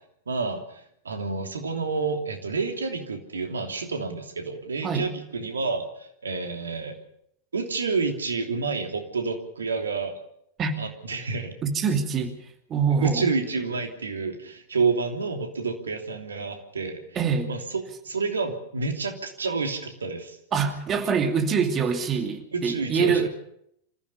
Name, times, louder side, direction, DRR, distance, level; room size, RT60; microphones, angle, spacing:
voice 1, 0.3-6.9 7.5-10.1 10.8-11.5 13.0-17.0 17.5-20.4 22.5-23.3, right 4 dB, 70° right, 4 dB, 3.0 m, -29 dB
voice 2, 11.6-12.3 12.7-13.2 17.1-17.5 20.5-23.3, right 6 dB, 30° right, 5 dB, 2.7 m, -24 dB
27.5 x 15.5 x 6.9 m, 0.73 s
figure-of-eight pair, 90°, 0 cm